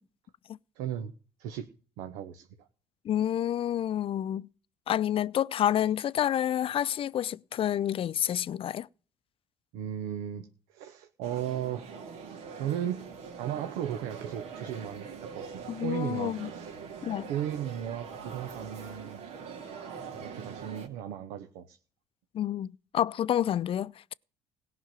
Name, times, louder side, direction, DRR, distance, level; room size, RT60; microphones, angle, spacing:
voice 1, 0.8-1.1 1.4-1.7 2.0-2.7 9.7-11.9 12.5-13.0 13.4-16.8 17.3-19.2 20.2-21.8, right 10 dB, 85° right, 1.0 m, -36 dB
voice 2, 3.0-4.5 4.9-8.9 15.7-16.5 17.0-17.3 22.3-24.1, left 10 dB, 50° left, 0.5 m, -29 dB
sound 1, 11.2-20.9, right 6 dB, 70° right, 2.8 m, -43 dB
17.0 x 5.9 x 7.4 m
supercardioid pair, 75°, 12 cm